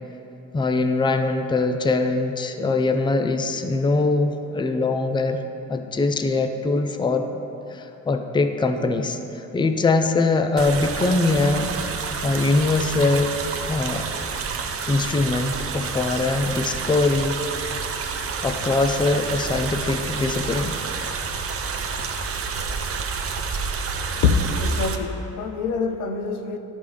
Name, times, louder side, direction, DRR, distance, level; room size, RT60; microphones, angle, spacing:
voice 1, 0.5-5.4 5.7-7.2 7.7-11.7 12.0-13.3 13.7-14.1 14.9-17.4 18.4-20.7, left 3 dB, 15° left, 6 dB, 0.4 m, -22 dB
sound 1, 10.6-25.0, right 5 dB, 50° right, 0.7 m, -29 dB
voice 2, 24.6-26.6, left 5 dB, 85° left, 6 dB, 0.6 m, -24 dB
11.0 x 5.2 x 3.5 m, 3.0 s
cardioid pair, 90°, 30 cm